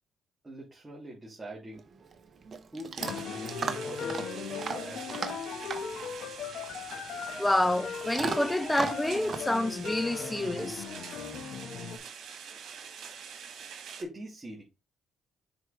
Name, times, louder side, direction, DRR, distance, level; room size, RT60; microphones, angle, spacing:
voice 1, 0.4-1.9 2.7-5.3 14.0-14.6, right 1 dB, 20° right, 3.3 m, -44 dB
Chewing mastication / Dog, 1.7-10.9, right 5 dB, 45° right, 1.2 m, -39 dB
sound 1, 2.9-14.0, right 7 dB, 75° right, 2.1 m, -45 dB
sound 2, 3.0-12.0, left 6 dB, 75° left, 1.8 m, -38 dB
voice 2, 7.4-10.8, left 1 dB, 10° left, 0.6 m, -28 dB
7.4 x 4.9 x 3.6 m
cardioid pair, 90°, 0 cm